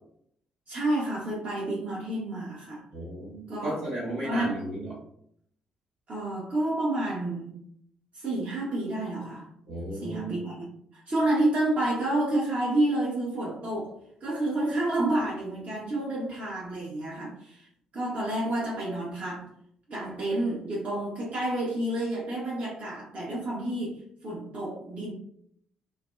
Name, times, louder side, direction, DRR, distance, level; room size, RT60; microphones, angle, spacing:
voice 1, 0.7-2.8 3.5-3.8 4.2-4.6 6.1-7.5 8.1-9.5 10.0-10.7 10.9-17.7 17.9-19.5 19.9-25.1, right 1 dB, 45° right, -6 dB, 0.8 m, -29 dB
voice 2, 2.9-4.9 9.7-10.4, right 1 dB, 80° right, -7 dB, 1.4 m, -34 dB
2.5 x 2.1 x 2.3 m, 0.68 s
hypercardioid pair, 45°, 3 cm